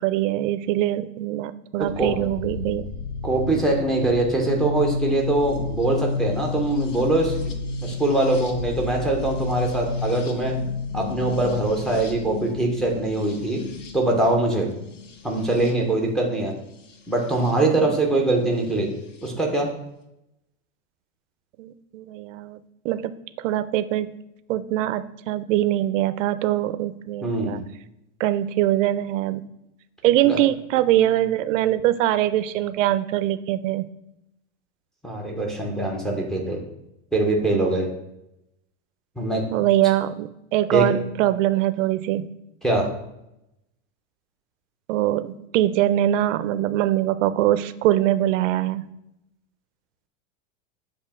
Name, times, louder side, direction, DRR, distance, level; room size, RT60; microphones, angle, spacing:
voice 1, 0.0-2.9 21.6-24.1 24.5-27.7 28.2-29.4 30.0-33.9 39.5-42.3 44.9-48.8, right 13 dB, 80° right, 13 dB, 0.5 m, -23 dB
sound 1, 1.8-17.5 18.7-19.3, left 4 dB, 85° left, 1.0 m, -32 dB
voice 2, 3.2-7.5 7.8-10.6 10.9-13.6 13.9-14.7 15.2-16.5 17.1-18.9 19.2-19.7 27.2-27.5 30.2-30.4 35.0-36.6 37.1-37.9 39.2-39.4 40.7-40.8 42.6-42.9, right 2 dB, ahead, -1 dB, 0.4 m, -23 dB
6.8 x 2.7 x 5.6 m, 0.85 s
supercardioid pair, 160°, 37 cm